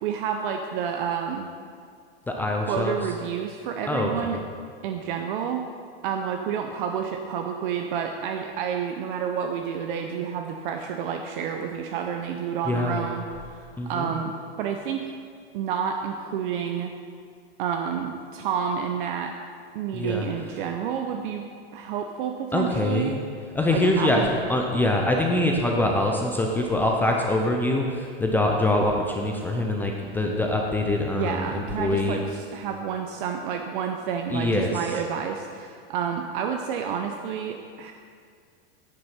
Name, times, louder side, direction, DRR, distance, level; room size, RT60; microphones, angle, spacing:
voice 1, 0.0-1.5 2.7-4.4 4.8-5.6 6.0-14.3 14.6-15.0 15.5-16.9 17.6-19.3 19.7-23.2 23.7-24.3 31.1-37.9, right 7 dB, 55° right, 4 dB, 0.7 m, -29 dB
voice 2, 2.3-3.0 3.9-4.4 12.7-13.1 13.8-14.1 19.9-20.3 22.5-23.2 23.5-32.2 34.3-34.8, left 1 dB, 5° left, 0 dB, 0.4 m, -24 dB
9.2 x 6.7 x 5.7 m, 2.2 s
supercardioid pair, 145°, 32 cm